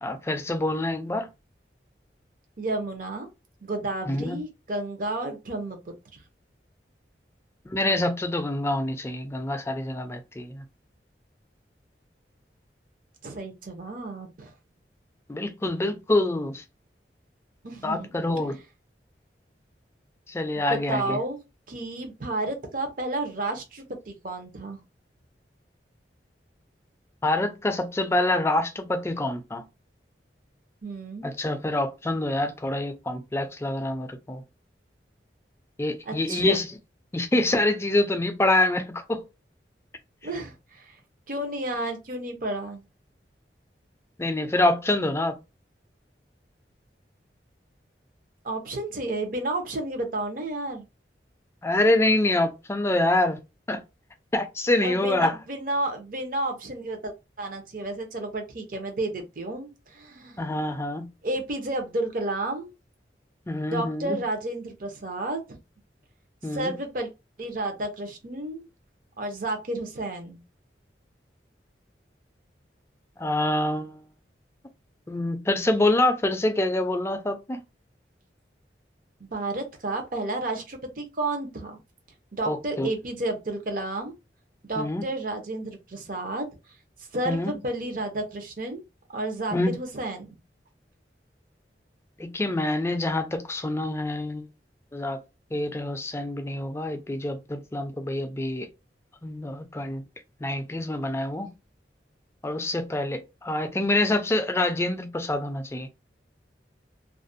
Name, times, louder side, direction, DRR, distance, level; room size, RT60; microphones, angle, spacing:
voice 1, 0.0-1.3 4.1-4.4 7.7-10.6 15.3-16.6 17.8-18.6 20.3-21.2 27.2-29.6 31.2-34.4 35.8-36.8 37.1-39.3 44.2-45.4 51.6-53.4 53.7-53.8 54.3-55.4 60.4-61.1 63.5-64.2 66.4-66.8 73.2-74.0 75.1-77.6 82.5-82.9 84.8-85.0 87.3-87.5 89.5-89.7 92.2-94.5 94.9-95.2 95.5-98.7 99.2-100.0 100.4-101.5 102.4-105.9, left 1 dB, 15° left, 0.3 m, -26 dB
voice 2, 2.6-3.3 3.6-6.2 13.2-14.5 17.6-18.2 20.7-21.4 21.7-24.8 30.8-31.3 36.1-36.6 40.2-41.0 41.3-42.8 48.4-50.9 54.8-60.4 61.2-62.7 63.6-65.6 66.5-67.1 67.4-68.7 69.2-70.4 79.2-81.8 82.3-84.1 84.6-86.5 87.1-88.8 89.1-90.4, right 2 dB, 50° right, 0.6 m, -31 dB
2.4 x 2.0 x 2.5 m
head